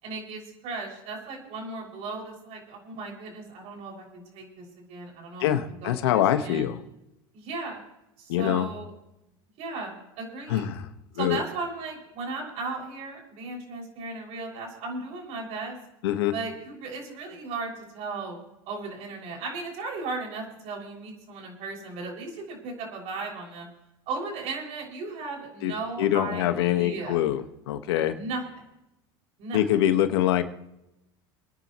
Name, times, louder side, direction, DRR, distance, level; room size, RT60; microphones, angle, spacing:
voice 1, 0.0-6.7 7.3-7.8 8.2-8.9 9.6-10.7 11.1-15.8 16.3-18.4 18.7-23.7 24.1-26.5 26.8-27.2 28.1-28.4 29.4-29.6, right 3 dB, 55° right, 0 dB, 6.4 m, -36 dB
voice 2, 5.4-6.8 8.3-8.7 10.5-10.9 11.1-11.4 16.0-16.3 25.6-25.7 26.0-28.1 29.5-30.4, left 12 dB, 80° left, 8 dB, 1.6 m, -24 dB
28.0 x 10.5 x 3.2 m, 0.89 s
supercardioid pair, 105°, 13 cm